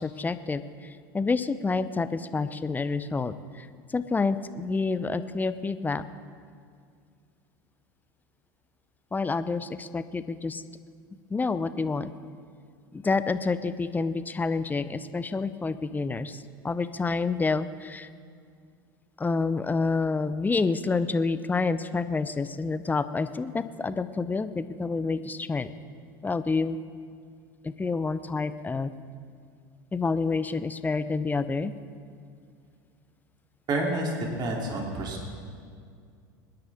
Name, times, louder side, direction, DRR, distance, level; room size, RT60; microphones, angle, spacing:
voice 1, 0.0-6.0 9.1-10.6 11.3-12.1 12.9-18.1 19.2-25.7 26.2-26.8 27.6-28.9 29.9-31.7, left 4 dB, 15° left, 13 dB, 0.7 m, -28 dB
voice 2, 33.7-34.1 34.4-35.3, right 2 dB, 40° right, -1 dB, 3.1 m, -29 dB
26.5 x 10.5 x 3.6 m, 2.2 s
hypercardioid pair, 85°, 11 cm